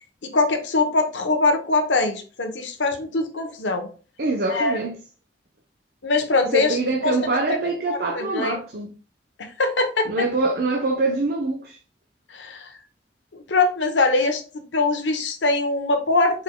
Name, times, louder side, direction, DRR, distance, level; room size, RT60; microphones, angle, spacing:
voice 1, 0.2-3.9 4.5-4.8 6.0-6.8 7.0-7.1 7.9-8.6 9.4-10.3 12.3-12.7 13.3-16.4, left 3 dB, 80° left, 0.9 m, -22 dB
voice 2, 4.2-4.9 6.5-8.9 10.1-11.8, right 2 dB, 55° right, 0.7 m, -24 dB
4.8 x 4.7 x 2.2 m
head